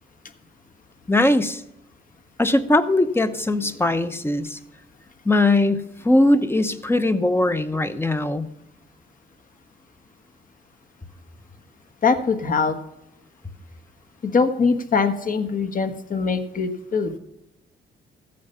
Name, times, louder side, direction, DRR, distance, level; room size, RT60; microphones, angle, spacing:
voice 1, 1.1-1.6 2.4-4.6 5.2-8.5, left 2 dB, 10° left, 10 dB, 0.8 m, -20 dB
voice 2, 12.0-12.8 14.2-17.1, left 5 dB, 45° left, 7 dB, 1.4 m, -22 dB
14.0 x 8.6 x 5.6 m, 0.85 s
cardioid pair, 90°, 20 cm